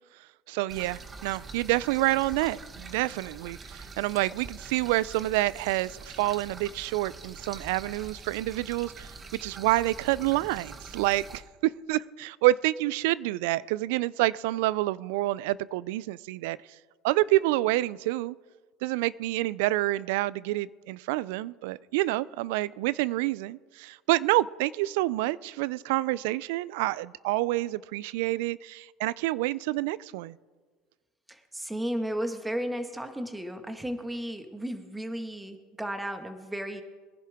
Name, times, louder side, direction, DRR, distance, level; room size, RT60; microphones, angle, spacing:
voice 1, 0.5-9.1 9.4-16.6 17.0-18.4 18.8-30.4, right 17 dB, 75° right, 21 dB, 0.3 m, -28 dB
sound 1, 0.7-11.4, right 3 dB, 30° right, 1.2 m, -45 dB
voice 2, 31.3-36.8, equal, 10° right, 7 dB, 1.6 m, -34 dB
22.0 x 11.0 x 3.6 m, 1.5 s
hypercardioid pair, 85°, 0 cm